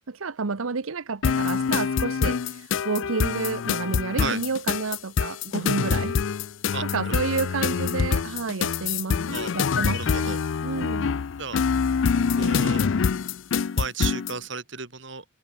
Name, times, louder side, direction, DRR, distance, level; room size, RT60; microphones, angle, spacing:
voice 1, 0.1-6.2 6.8-10.4 10.6-11.2, right 4 dB, 85° right, 0.9 m, -30 dB
sound 1, 1.2-14.4, left 6 dB, 65° left, 0.4 m, -25 dB
voice 2, 6.7-7.1 9.3-9.5 9.9-10.4 11.4-11.6 12.4-12.9 13.7-15.2, right 5 dB, 60° right, 3.4 m, -33 dB
head